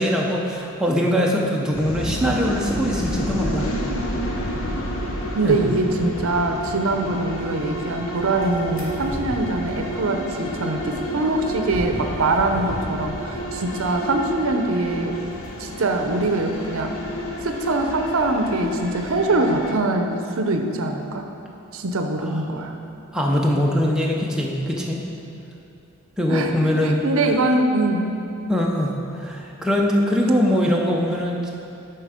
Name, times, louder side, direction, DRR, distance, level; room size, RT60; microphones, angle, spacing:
voice 1, 0.0-3.7 5.4-5.6 22.3-22.4 23.1-25.0 26.2-27.0 28.5-31.5, equal, 5° right, -3 dB, 0.6 m, -22 dB
sound 1, 1.7-19.7, equal, 65° left, 0.8 m, -30 dB
voice 2, 5.3-15.2 15.6-17.0 17.4-21.3 21.7-22.8 26.3-28.1, right 2 dB, 70° right, 4 dB, 0.6 m, -23 dB
sound 2, 8.2-17.3, equal, 35° left, 1.5 m, -37 dB
10.0 x 4.5 x 5.0 m, 2.7 s
head